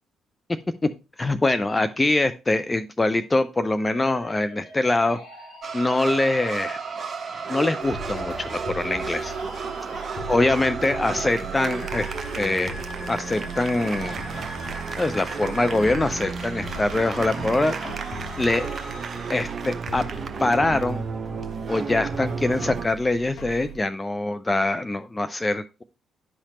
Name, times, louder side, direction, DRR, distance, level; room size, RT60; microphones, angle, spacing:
voice 1, 1.2-5.2 5.7-6.8 7.5-9.3 10.3-12.1 12.4-12.7 13.1-14.3 15.0-18.1 18.4-18.6 19.3-20.0 20.4-21.0 21.7-25.8, left 2 dB, 20° left, 10 dB, 0.4 m, -23 dB
sound 1, 3.8-19.3, left 2 dB, 75° left, 4.2 m, -43 dB
sound 2, 5.6-22.9, right 5 dB, 40° right, 0.7 m, -33 dB
sound 3, 7.8-23.8, right 2 dB, 55° left, 1.2 m, -39 dB
9.7 x 5.6 x 3.0 m, 0.31 s
figure-of-eight pair, 40°, 0 cm